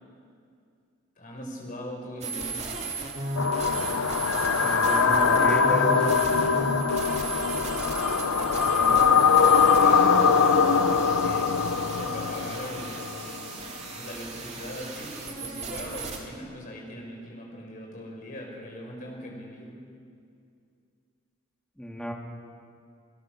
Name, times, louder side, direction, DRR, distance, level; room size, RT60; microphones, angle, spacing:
voice 1, 1.2-2.7 7.5-7.9 8.7-10.3 11.2-19.8, equal, 40° left, 0 dB, 4.9 m, -40 dB
sound 1, 2.2-16.2, right 3 dB, 30° right, 2.5 m, -36 dB
sound 2, 3.4-13.5, left 5 dB, 90° left, 0.9 m, -22 dB
voice 2, 4.6-6.1 21.8-22.1, equal, 5° left, 0 dB, 2.3 m, -32 dB
27.0 x 17.5 x 6.2 m, 2.3 s
head